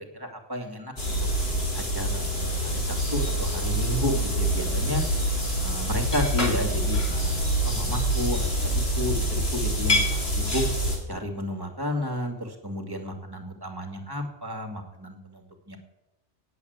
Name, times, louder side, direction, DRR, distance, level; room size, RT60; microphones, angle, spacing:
voice 1, 0.1-1.1 1.7-5.0 5.6-10.6 11.1-15.8, left 1 dB, 20° right, 5 dB, 2.3 m, -32 dB
sound 1, 1.0-11.0, equal, 55° left, 3.6 m, -26 dB
17.5 x 7.5 x 8.2 m, 0.93 s
omnidirectional pair, 1.2 m